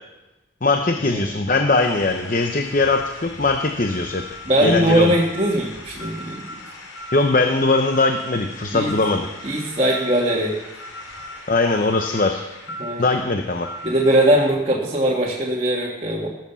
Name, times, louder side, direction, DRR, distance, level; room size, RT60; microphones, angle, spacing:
voice 1, 0.6-4.2 4.6-5.1 7.1-9.3 11.5-12.4 13.0-13.7, left 3 dB, 45° left, 5 dB, 0.8 m, -20 dB
sound 1, 1.7-14.5, left 1 dB, 75° left, 4.5 m, -38 dB
voice 2, 4.4-6.6 8.7-8.9 9.4-10.6 12.8-13.2 13.8-16.3, right 1 dB, 30° right, -4 dB, 1.7 m, -20 dB
18.0 x 7.5 x 7.0 m, 0.99 s
head